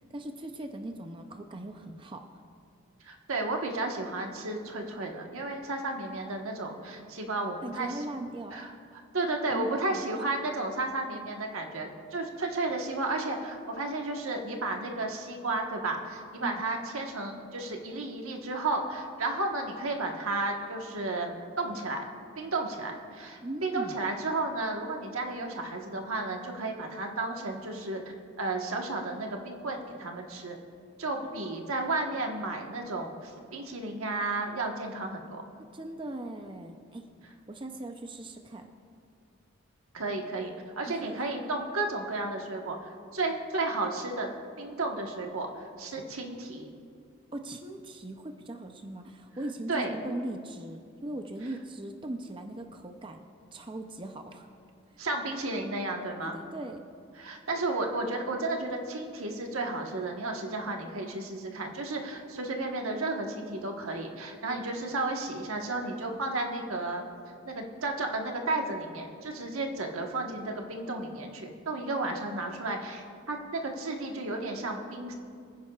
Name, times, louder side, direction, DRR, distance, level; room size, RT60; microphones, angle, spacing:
voice 1, 0.1-2.3 7.6-8.6 9.5-10.0 16.4-16.5 23.4-24.0 31.3-31.5 35.6-37.1 37.5-38.7 40.9-41.2 47.3-53.2 53.5-54.5 54.9-55.0 56.2-56.8, right 1 dB, 25° right, 5 dB, 0.5 m, -39 dB
voice 2, 3.0-8.0 8.5-8.7 9.1-22.1 22.4-28.0 28.4-30.6 31.0-35.4 39.9-44.3 44.6-46.7 49.7-49.9 55.0-56.4 57.2-67.0 67.4-75.1, right 2 dB, 85° right, 2 dB, 1.3 m, -33 dB
24.5 x 10.5 x 2.4 m, 2.3 s
head